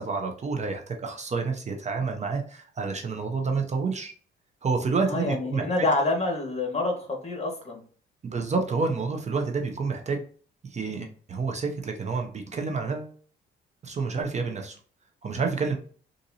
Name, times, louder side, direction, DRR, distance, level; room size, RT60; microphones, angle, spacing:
voice 1, 0.0-4.1 4.6-5.9 8.2-10.2 10.6-13.1 13.8-14.8 15.2-15.7, right 4 dB, 35° right, 4 dB, 0.6 m, -29 dB
voice 2, 5.1-7.8, left 2 dB, 30° left, 2 dB, 1.4 m, -27 dB
3.9 x 2.6 x 2.7 m, 0.43 s
cardioid pair, 90°, 20 cm